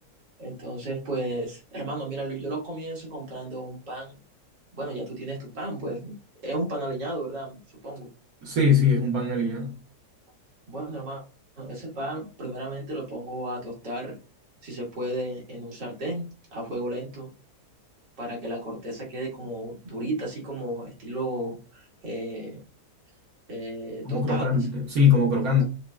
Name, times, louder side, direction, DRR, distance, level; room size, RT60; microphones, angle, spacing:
voice 1, 0.4-4.1 4.8-6.2 6.4-8.1 10.7-11.2 11.6-14.2 14.6-16.2 16.5-17.3 18.2-22.6 23.5-24.7, right 1 dB, 75° right, 2.6 m, -33 dB
voice 2, 8.4-9.7 24.0-25.6, left 4 dB, 60° right, 1.5 m, -22 dB
6.2 x 3.6 x 2.3 m
omnidirectional pair, 1.9 m